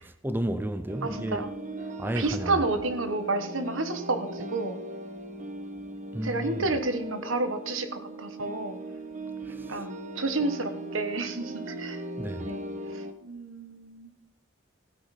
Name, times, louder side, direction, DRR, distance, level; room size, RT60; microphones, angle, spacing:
voice 1, 0.0-1.4 2.0-2.6 6.1-6.7 9.4-9.8 12.2-12.5, right 1 dB, 10° right, 0.5 m, -32 dB
sound 1, 0.9-13.1, right 2 dB, 40° right, 1.1 m, -39 dB
voice 2, 1.0-1.5 2.1-4.8 6.2-8.8 9.7-12.0 12.5-12.6 12.9-14.1, right 2 dB, 85° right, 1.3 m, -30 dB
15.5 x 9.1 x 4.2 m
head